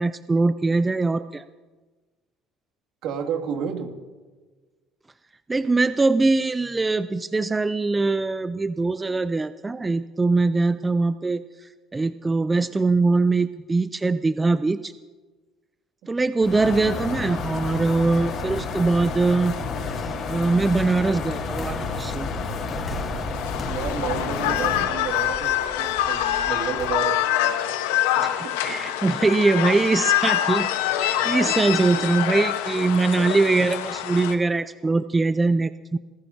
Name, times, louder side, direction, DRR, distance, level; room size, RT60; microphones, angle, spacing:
voice 1, 0.0-1.4 5.5-11.4 11.9-14.9 16.1-19.5 19.9-22.3 28.2-28.3 28.6-36.0, right 3 dB, 20° right, 13 dB, 0.5 m, -22 dB
voice 2, 3.0-3.9 16.7-17.0 23.7-27.2 28.2-28.8 31.2-32.3, right 7 dB, 65° right, 3 dB, 2.4 m, -32 dB
sound 1, 16.4-24.8, left 4 dB, 55° left, 4.1 m, -30 dB
sound 2, 21.5-26.9, equal, 30° left, 2.8 m, -38 dB
sound 3, 23.2-34.3, left 12 dB, 85° left, 1.2 m, -25 dB
27.0 x 16.0 x 2.8 m, 1.3 s
hypercardioid pair, 75°, 0 cm